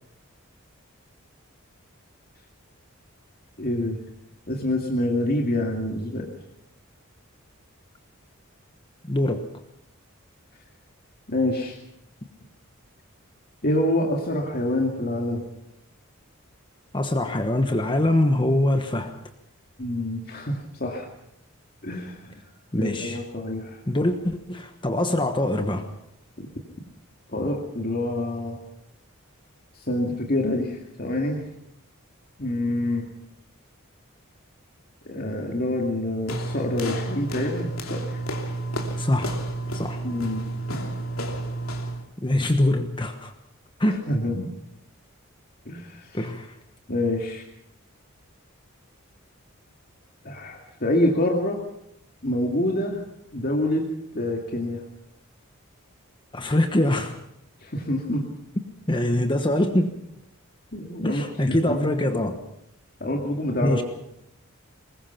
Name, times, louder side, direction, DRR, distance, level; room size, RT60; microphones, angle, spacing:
voice 1, 3.6-4.0 4.5-6.3 11.3-11.8 13.6-15.4 19.8-21.1 21.8-22.4 22.8-23.8 26.4-26.5 27.3-28.6 29.7-31.5 32.4-33.1 35.1-38.2 40.0-40.5 43.9-44.5 45.7-46.2 46.9-47.4 50.2-51.6 52.2-53.0 53.3-53.9 54.1-54.8 57.6-58.2 60.7-61.9 63.0-63.8, left 1 dB, 45° left, 0 dB, 2.3 m, -26 dB
voice 2, 9.0-9.5 16.9-19.2 22.7-23.2 23.9-25.9 39.0-39.4 39.7-40.0 42.2-43.3 43.8-44.1 46.1-46.6 56.3-57.2 58.9-59.9 61.0-62.4 63.6-63.8, left 1 dB, 20° left, 6 dB, 1.2 m, -23 dB
sound 1, 36.3-42.1, right 1 dB, 80° left, 3.0 m, -31 dB
23.0 x 20.5 x 5.8 m, 0.78 s
head